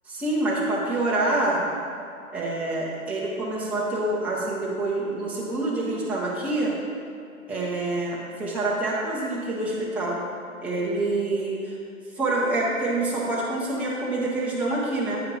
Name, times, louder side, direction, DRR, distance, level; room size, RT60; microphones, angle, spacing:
voice 1, 0.1-1.6 2.3-6.7 7.5-10.2 10.6-11.8 12.1-15.2, right 2 dB, 5° right, -6 dB, 0.5 m, -26 dB
8.5 x 5.1 x 4.0 m, 2.5 s
figure-of-eight pair, 120°, 42 cm